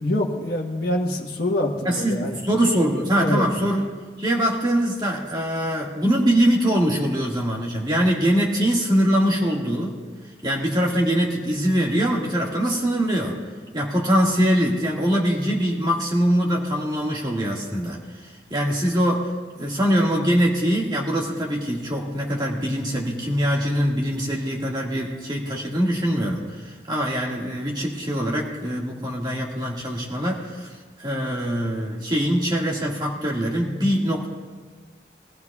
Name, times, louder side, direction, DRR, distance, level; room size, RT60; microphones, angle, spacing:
voice 1, 0.0-2.4 3.2-3.5, left 1 dB, 55° left, -2 dB, 1.3 m, -25 dB
voice 2, 1.9-3.9 4.2-10.0 10.4-13.4 13.7-19.3 19.6-34.3, equal, 25° right, -2 dB, 1.9 m, -23 dB
20.5 x 14.5 x 2.4 m, 1.4 s
head